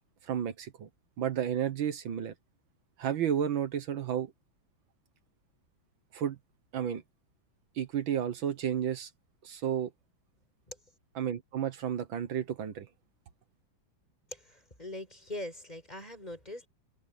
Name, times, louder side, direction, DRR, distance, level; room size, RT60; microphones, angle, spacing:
voice 1, 0.2-0.9 1.2-2.3 3.0-4.3 6.1-6.4 6.7-7.0 7.8-9.1 9.4-9.9 11.2-12.9, right 9 dB, 75° right, 2.0 m, -32 dB
voice 2, 14.3-16.7, left 1 dB, 20° left, 5.0 m, -42 dB
omnidirectional pair, 2.2 m